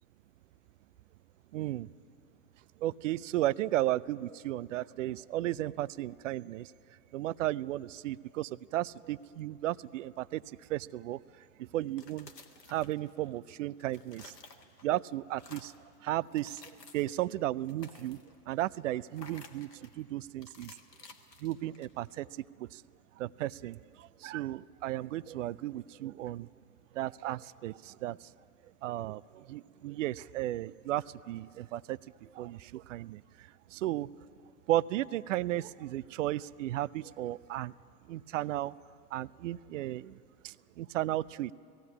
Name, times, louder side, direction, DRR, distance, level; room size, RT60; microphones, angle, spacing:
voice 1, 1.5-1.9 2.8-6.7 7.1-12.3 12.7-14.3 14.8-15.7 16.0-16.6 16.9-20.8 21.4-22.8 23.2-26.5 26.9-28.3 28.8-34.1 34.7-37.7 38.1-38.8 39.1-41.5, right 14 dB, 55° right, 20 dB, 0.5 m, -35 dB
sound 1, 11.8-13.4 13.7-15.0 15.3-15.9 16.3-17.2 17.6-18.4 19.1-20.0 20.4-22.1, left 4 dB, 85° left, 1.5 m, -54 dB
18.5 x 15.0 x 9.7 m, 2.5 s
figure-of-eight pair, 95°, 47 cm